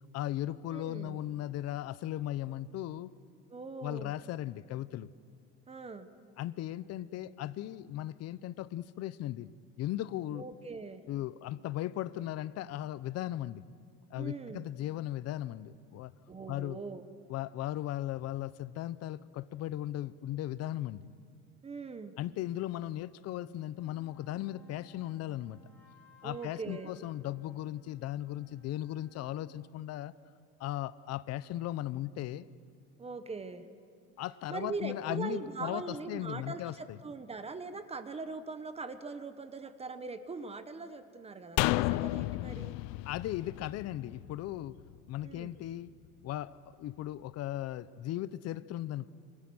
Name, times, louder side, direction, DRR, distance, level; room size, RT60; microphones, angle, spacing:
voice 1, 0.1-3.1 3.8-5.1 6.4-9.5 9.8-10.4 11.1-13.7 14.1-16.1 16.5-16.8 17.3-21.0 22.2-25.6 26.2-30.1 30.6-32.5 34.2-37.0 43.0-44.8 45.1-45.9 46.2-49.1, left 13 dB, 55° left, 17 dB, 0.8 m, -37 dB
voice 2, 0.7-1.2 3.5-4.1 5.7-6.1 10.3-11.0 14.1-14.7 16.3-17.0 21.6-22.1 26.2-26.9 33.0-33.7 34.5-42.8 45.2-45.5, right 4 dB, 20° right, 11 dB, 1.1 m, -41 dB
sound 1, 23.5-29.7, left 1 dB, 5° left, 4.4 m, -62 dB
sound 2, 41.6-44.9 45.2-45.3, left 20 dB, 80° left, 0.6 m, -32 dB
28.0 x 25.5 x 6.3 m, 2.3 s
cardioid pair, 140°, 31 cm